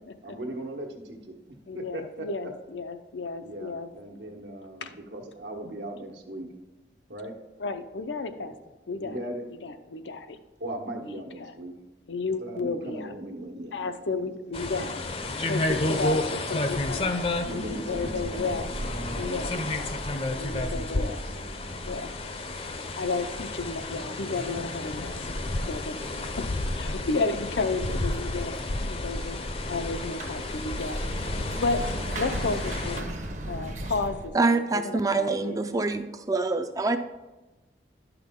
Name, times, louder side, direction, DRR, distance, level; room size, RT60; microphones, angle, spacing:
voice 1, 0.2-1.3 1.7-2.5 3.4-6.5 7.1-7.3 8.4-8.5 9.0-9.5 10.6-11.7 12.4-13.9 14.2-14.3 17.4-18.5 19.1-19.7 21.1-21.9, right 1 dB, 80° right, 2 dB, 1.3 m, -38 dB
voice 2, 1.7-3.9 4.8-4.9 7.6-8.5 8.9-9.2 9.6-10.4 11.0-11.5 12.1-13.1 13.7-15.0 15.5-17.1 17.5-18.7 19.2-19.5 20.4-21.2 21.9-22.1 23.0-25.2 25.7-26.0 26.4-26.5 26.8-29.4 29.7-31.0 31.6-31.8 32.2-33.1 33.4-34.3 34.7-35.8, left 3 dB, 85° left, 9 dB, 0.6 m, -32 dB
sound 1, 14.5-33.0, left 2 dB, 35° left, 0.6 m, -31 dB
sound 2, 18.7-34.3, right 1 dB, 40° right, 0.8 m, -40 dB
voice 3, 34.3-37.0, right 3 dB, 20° right, 9 dB, 0.4 m, -25 dB
11.0 x 5.9 x 3.7 m, 1.1 s
head